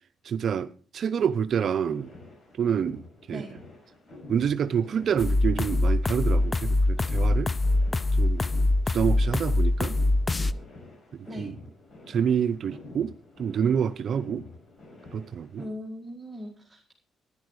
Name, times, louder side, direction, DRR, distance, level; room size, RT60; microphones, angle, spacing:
voice 1, 0.2-2.1 2.6-3.0 3.3-3.4 4.3-7.5 8.2-8.4 8.9-10.0 11.2-11.5 12.1-14.5 15.1-15.6, right 7 dB, 60° right, 0.5 m, -27 dB
sound 1, 1.8-15.7, left 2 dB, 50° left, 5.8 m, -48 dB
sound 2, 5.2-10.5, left 2 dB, 25° left, 0.5 m, -23 dB
voice 2, 15.6-16.9, equal, 15° right, 1.9 m, -39 dB
10.5 x 10.5 x 4.8 m
cardioid pair, 90°, 0 cm